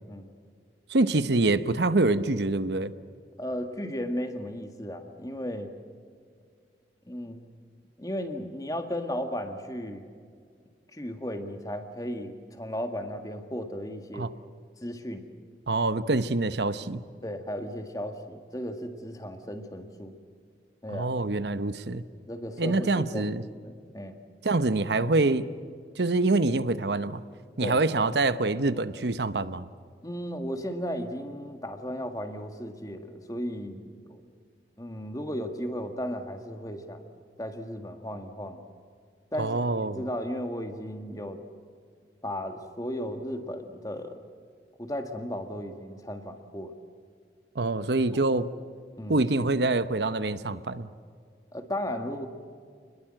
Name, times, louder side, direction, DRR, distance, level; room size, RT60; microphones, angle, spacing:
voice 1, 0.9-2.9 14.1-14.3 15.7-17.0 20.9-22.0 22.6-23.4 24.4-25.5 26.0-27.2 27.6-29.7 39.4-40.0 47.6-48.5 49.1-50.9, right 2 dB, 75° right, 13 dB, 0.9 m, -25 dB
voice 2, 3.4-5.7 7.1-7.4 8.0-10.0 10.9-14.3 14.8-15.3 17.2-20.2 20.8-21.1 22.3-23.4 23.6-24.2 27.6-27.8 30.0-34.2 34.8-37.0 37.4-38.6 39.3-39.6 39.9-41.4 42.2-44.2 44.8-46.7 48.0-48.2 49.0-49.5 51.5-52.3, equal, 20° left, 6 dB, 1.8 m, -35 dB
28.0 x 21.0 x 7.7 m, 2.1 s
head